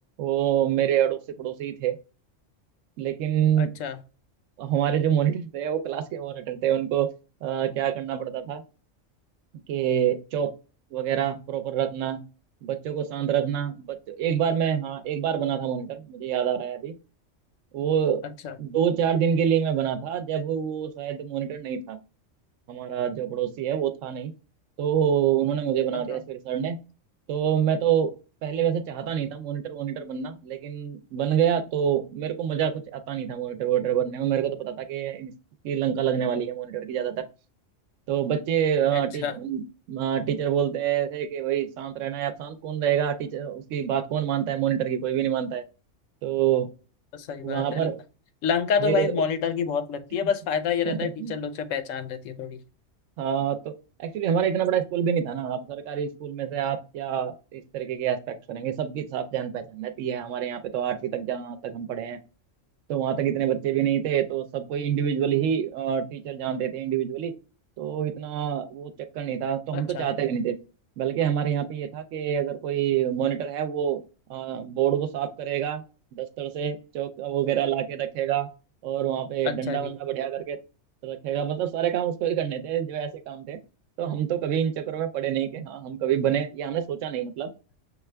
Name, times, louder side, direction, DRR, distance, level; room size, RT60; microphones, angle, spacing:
voice 1, 0.2-2.0 3.0-3.7 4.6-7.1 7.4-8.6 9.7-10.5 10.9-12.2 12.6-17.0 17.7-18.2 18.6-22.0 22.7-24.3 24.8-26.8 27.3-28.1 28.4-35.3 35.6-37.3 38.1-45.6 46.2-46.7 47.4-48.0 48.8-49.1 50.8-51.4 53.2-53.7 54.0-62.2 62.9-67.3 67.8-70.6 71.0-74.0 74.3-75.8 76.1-78.5 78.8-80.6 81.0-83.6 84.0-87.5, right 9 dB, 80° right, 9 dB, 0.9 m, -27 dB
voice 2, 3.6-4.0 18.4-18.6 25.9-26.2 38.9-39.4 47.1-47.9 48.4-52.6 69.7-70.1 79.4-79.9, left 7 dB, 85° left, 10 dB, 1.0 m, -28 dB
6.4 x 2.3 x 3.3 m, 0.34 s
omnidirectional pair, 1.3 m